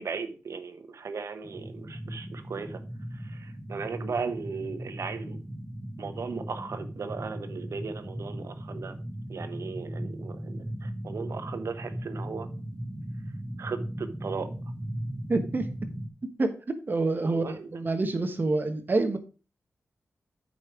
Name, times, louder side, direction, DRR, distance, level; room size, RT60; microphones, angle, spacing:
voice 1, 0.0-2.8 3.1-5.4 6.0-8.9 9.3-12.5 13.6-14.5 17.2-17.8, right 5 dB, 65° right, 1.0 m, -37 dB
sound 1, 1.4-16.1, right 1 dB, 10° right, 1.2 m, -38 dB
voice 2, 15.3-15.7 16.4-16.5 16.9-19.2, right 3 dB, 40° right, 1.2 m, -27 dB
8.2 x 5.3 x 4.8 m
wide cardioid pair, 120°, 5 cm